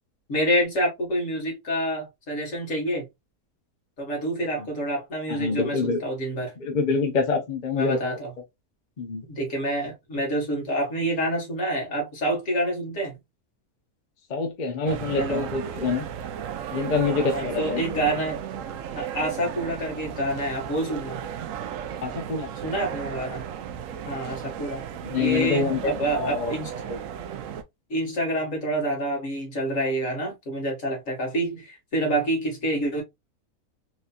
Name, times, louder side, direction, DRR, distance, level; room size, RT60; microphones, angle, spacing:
voice 1, 0.3-3.1 4.0-6.5 7.8-8.3 9.3-13.2 15.2-15.5 17.2-18.4 18.9-21.2 22.6-23.4 24.0-24.8 25.2-26.7 27.9-33.0, right 1 dB, 60° left, 2.0 m, -27 dB
voice 2, 5.3-6.0 6.6-8.2 9.0-9.2 14.3-16.1 16.7-17.8 22.0-22.5 25.0-26.5 26.9-27.0, left 4 dB, 40° left, 0.7 m, -26 dB
sound 1, 14.9-27.6, right 9 dB, 70° right, 0.9 m, -35 dB
4.2 x 2.8 x 2.3 m
omnidirectional pair, 1.6 m